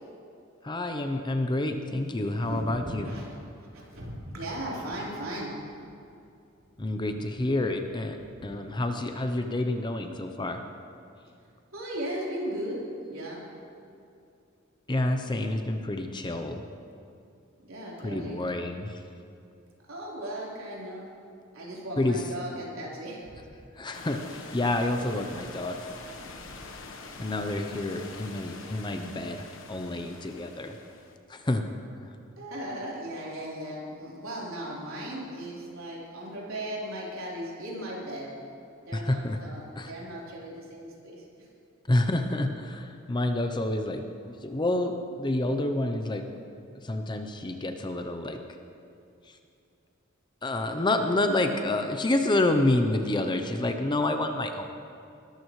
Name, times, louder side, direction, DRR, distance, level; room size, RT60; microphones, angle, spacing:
voice 1, 0.6-3.1 6.8-8.2 8.4-10.6 14.9-16.6 18.0-19.0 22.0-22.2 23.8-25.8 27.2-30.7 31.3-31.6 38.9-39.4 39.8-39.9 41.9-46.2 46.8-48.4 50.4-54.6, left 2 dB, 20° left, 6 dB, 0.6 m, -28 dB
voice 2, 2.4-3.4 3.7-5.5 6.9-7.0 8.4-8.5 11.7-12.8 13.1-13.4 17.6-18.4 19.9-21.1 21.5-23.2 32.4-38.3 38.9-41.2, right 1 dB, 75° right, -5 dB, 4.0 m, -37 dB
sound 1, 23.9-31.2, left 3 dB, 65° left, 1.2 m, -44 dB
20.5 x 13.0 x 3.2 m, 2.6 s
head